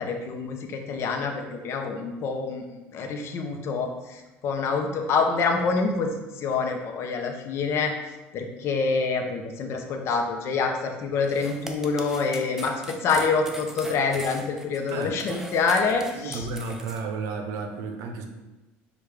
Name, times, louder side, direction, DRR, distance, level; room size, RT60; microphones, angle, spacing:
voice 1, 0.0-7.9 8.3-16.5, left 4 dB, 55° left, 3 dB, 0.7 m, -26 dB
sound 1, 11.2-17.0, right 1 dB, 10° right, 0.5 m, -40 dB
voice 2, 16.1-18.3, right 4 dB, 70° right, 5 dB, 0.7 m, -32 dB
6.3 x 2.4 x 3.3 m, 1.1 s
supercardioid pair, 110°, 5 cm